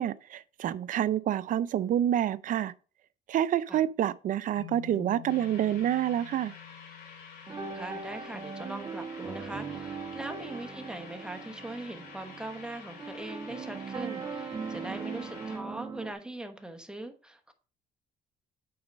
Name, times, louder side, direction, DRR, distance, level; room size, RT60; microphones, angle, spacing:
voice 1, 0.0-2.7 3.3-6.5, right 11 dB, 50° right, 0.5 m, -28 dB
sound 1, 4.5-8.8, left 18 dB, 25° left, 2.6 m, -49 dB
sound 2, 5.3-15.6, left 5 dB, 75° left, 3.1 m, -50 dB
sound 3, 7.5-16.1, right 5 dB, 25° right, 1.2 m, -39 dB
voice 2, 7.7-17.5, right 1 dB, 5° right, 1.1 m, -41 dB
8.7 x 4.0 x 5.1 m
cardioid pair, 110°, 17 cm